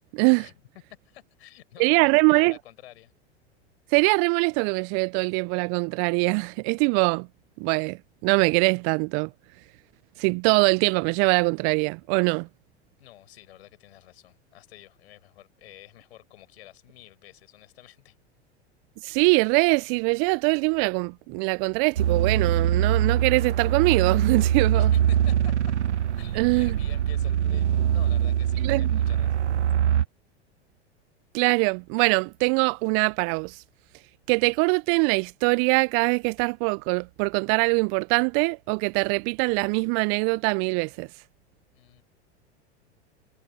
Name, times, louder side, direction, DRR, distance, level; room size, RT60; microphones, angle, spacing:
voice 1, 0.1-0.5 1.8-2.5 3.9-7.3 7.6-9.3 10.2-12.5 19.0-24.9 26.3-26.8 28.6-29.0 31.3-33.6 34.3-41.1, right 36 dB, 40° right, 0.5 m, -23 dB
voice 2, 1.0-3.1 13.0-18.1 24.7-25.7 26.1-29.5 41.7-42.0, left 14 dB, 65° left, 5.1 m, -50 dB
sound 1, 22.0-30.0, right 10 dB, 90° right, 0.5 m, -23 dB
hypercardioid pair, 90°, 34 cm